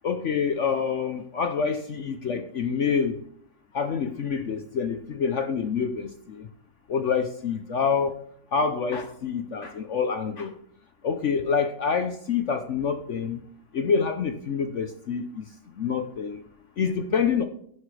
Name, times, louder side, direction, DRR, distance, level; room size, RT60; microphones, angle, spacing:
voice 1, 0.0-3.2 3.7-6.5 6.9-8.1 8.5-10.5 11.0-13.4 13.7-15.3 15.8-16.4 16.8-17.4, left 6 dB, 60° left, 8 dB, 0.8 m, -26 dB
11.0 x 10.5 x 3.3 m, 0.66 s
omnidirectional pair, 1.9 m